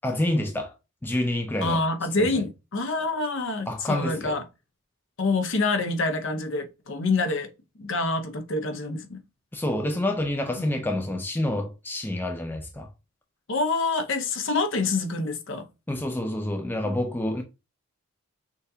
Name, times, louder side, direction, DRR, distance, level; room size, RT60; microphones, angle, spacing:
voice 1, 0.0-0.7 1.0-1.8 2.2-2.3 3.7-4.4 9.5-12.9 15.9-17.4, left 1 dB, 10° left, 0.4 m, -28 dB
voice 2, 1.6-4.4 5.2-7.5 7.8-9.2 13.5-15.7 16.8-17.0, left 3 dB, 55° left, 0.7 m, -26 dB
6.1 x 2.7 x 2.7 m
head